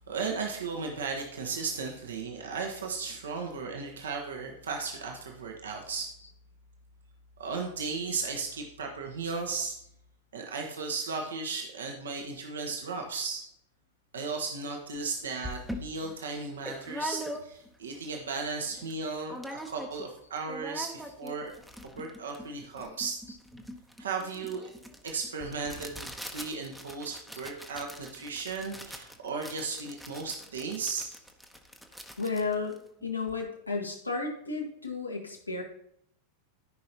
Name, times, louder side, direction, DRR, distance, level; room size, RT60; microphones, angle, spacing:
voice 1, 0.0-6.1 7.4-9.7 10.3-13.4 14.1-21.6 22.0-23.2 24.0-24.7 25.0-31.1, right 4 dB, 65° right, 1 dB, 1.2 m, -35 dB
sound 1, 15.0-15.1 15.4-17.8 18.2-18.3 18.5-19.0 19.3-20.1 20.4-33.4, equal, ahead, 0.9 m, -42 dB
voice 2, 32.2-35.6, left 4 dB, 85° left, 0 dB, 1.6 m, -33 dB
14.0 x 5.3 x 2.9 m, 0.74 s
figure-of-eight pair, 90°, 0 cm